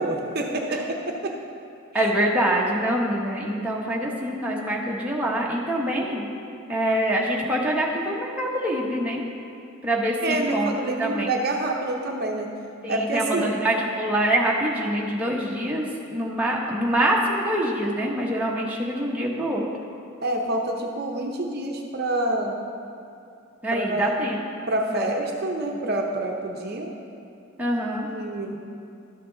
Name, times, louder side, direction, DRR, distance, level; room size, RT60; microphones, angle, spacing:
voice 1, 0.0-1.3 1.9-2.0 10.2-12.5 12.9-13.5 20.2-22.6 23.7-24.1 24.7-26.9 28.0-28.6, right 1 dB, 45° right, 1 dB, 0.7 m, -27 dB
voice 2, 1.9-6.2 6.7-9.2 9.8-11.3 12.8-19.6 23.6-24.4 24.9-25.1 25.7-25.8 27.6-28.1, right 1 dB, 5° right, -4 dB, 0.9 m, -25 dB
12.0 x 6.4 x 3.8 m, 2.6 s
head